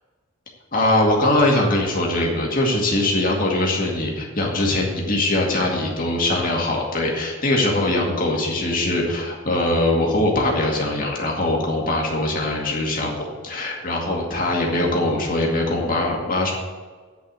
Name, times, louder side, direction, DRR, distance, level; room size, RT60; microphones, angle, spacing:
voice 1, 0.7-13.1 13.4-16.5, left 1 dB, 40° left, -2 dB, 2.2 m, -21 dB
10.0 x 5.4 x 8.2 m, 1.5 s
head